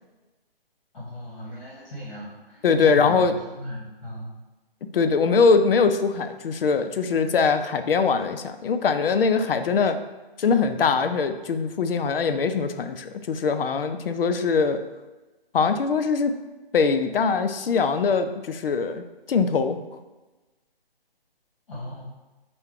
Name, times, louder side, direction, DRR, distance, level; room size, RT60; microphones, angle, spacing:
voice 1, 0.9-4.3 21.7-22.0, equal, 30° left, -9 dB, 1.4 m, -36 dB
voice 2, 2.6-3.3 4.9-10.0 10.4-14.8 15.5-16.3 16.7-19.0 19.3-19.8, left 5 dB, 70° left, 8 dB, 0.4 m, -22 dB
4.4 x 2.3 x 3.6 m, 1.1 s
hypercardioid pair, 170°, 30 cm